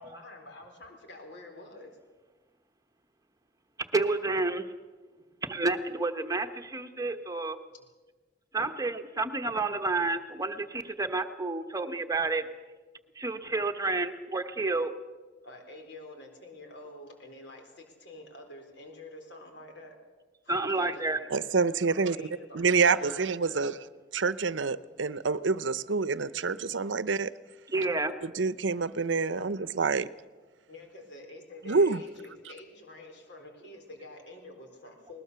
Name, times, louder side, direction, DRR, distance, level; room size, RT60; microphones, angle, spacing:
voice 1, 0.0-1.9 15.4-20.0 20.4-21.2 21.9-23.7 30.7-35.2, left 2 dB, 65° left, 4 dB, 4.2 m, -48 dB
voice 2, 3.9-4.7 5.4-7.6 8.5-12.5 13.2-14.9 20.5-21.2 27.7-28.1, right 3 dB, 20° right, 7 dB, 1.1 m, -30 dB
voice 3, 21.3-22.2 22.5-23.7 24.1-27.3 28.2-30.1 31.7-32.0, right 4 dB, 80° right, 16 dB, 0.7 m, -27 dB
20.5 x 20.0 x 6.9 m, 1.3 s
head